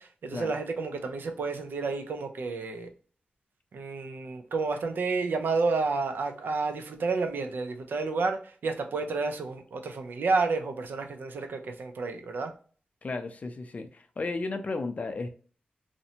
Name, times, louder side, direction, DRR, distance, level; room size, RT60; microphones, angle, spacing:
voice 1, 0.0-2.9 3.7-12.5, right 4 dB, 80° right, 0.4 m, -30 dB
voice 2, 13.0-15.3, left 3 dB, 45° left, 0.4 m, -34 dB
2.5 x 2.1 x 2.7 m
wide cardioid pair, 85°, 3 cm